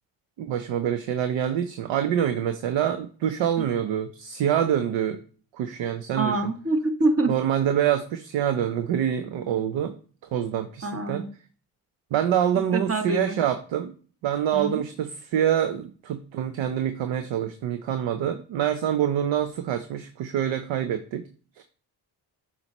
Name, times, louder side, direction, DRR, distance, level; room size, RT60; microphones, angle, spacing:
voice 1, 0.4-5.2 5.5-6.4 7.3-9.9 10.2-11.3 12.1-13.9 14.2-21.2 21.6-21.7, right 9 dB, 65° right, 9 dB, 0.7 m, -26 dB
voice 2, 6.2-7.3 10.8-11.3 12.7-13.4 14.5-14.8, right 2 dB, 30° right, 7 dB, 1.1 m, -25 dB
7.6 x 4.4 x 3.0 m, 0.41 s
hypercardioid pair, 45°, 49 cm